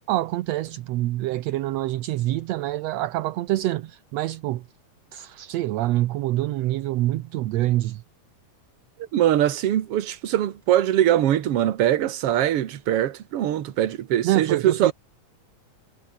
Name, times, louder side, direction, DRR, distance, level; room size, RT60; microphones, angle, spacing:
voice 1, 0.1-4.7 5.1-8.0 14.2-14.9, right 16 dB, 75° right, 1.8 m, -26 dB
voice 2, 9.1-14.9, right 11 dB, 55° right, 2.1 m, -22 dB
omnidirectional pair, 3.4 m